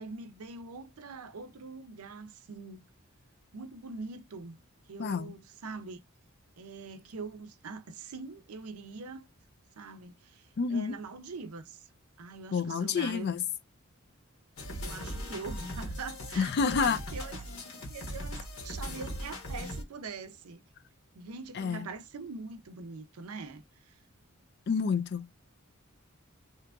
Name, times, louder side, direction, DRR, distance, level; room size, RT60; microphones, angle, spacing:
voice 1, 0.0-2.9 3.5-4.6 4.9-6.0 6.6-9.3 9.8-11.9 12.2-13.3 14.8-17.4 17.9-20.6 21.1-24.0, right 4 dB, 85° right, 0.5 m, -43 dB
voice 2, 5.0-5.3 10.6-11.0 12.5-13.4 16.4-17.0 21.6-21.9 24.7-25.3, left 5 dB, 50° left, 0.3 m, -29 dB
sound 1, 14.6-19.8, equal, 65° left, 1.1 m, -39 dB
2.8 x 2.4 x 3.4 m
head